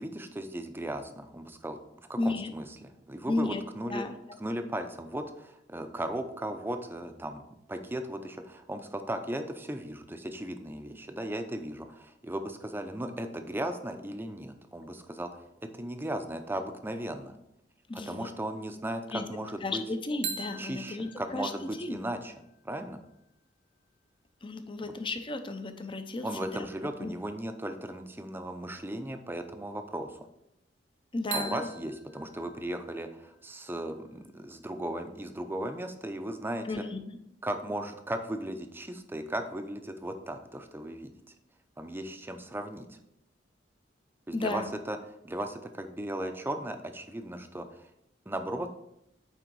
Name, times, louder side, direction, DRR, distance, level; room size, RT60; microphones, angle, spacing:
voice 1, 0.0-4.0 4.4-7.4 7.7-17.3 17.9-19.8 20.6-22.3 22.6-23.0 24.8-24.9 26.2-30.3 31.3-36.7 37.4-41.1 41.8-42.9 44.3-45.0 45.2-47.8 48.3-48.7, right 1 dB, 10° right, 7 dB, 0.6 m, -36 dB
voice 2, 2.2-2.5 3.3-3.6 3.9-4.4 17.9-18.3 19.1-19.3 19.6-21.5 21.8-22.0 24.4-26.7 27.0-27.1 31.1-31.7 36.6-37.2 44.3-44.7, left 2 dB, 30° left, 8 dB, 0.6 m, -34 dB
sound 1, 20.2-24.1 31.3-35.2, right 5 dB, 65° right, 1.0 m, -44 dB
9.0 x 3.7 x 4.6 m, 0.82 s
head